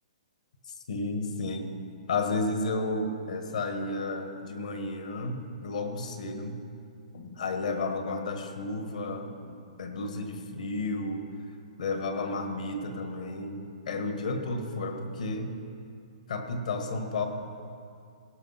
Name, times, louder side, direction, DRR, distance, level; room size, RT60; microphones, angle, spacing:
voice 1, 0.9-1.7 2.1-6.6 7.1-9.3 9.8-11.2 11.8-15.5 16.3-17.3, left 2 dB, 75° left, 5 dB, 1.5 m, -32 dB
16.5 x 5.7 x 5.8 m, 2.4 s
hypercardioid pair, 160°, 4 cm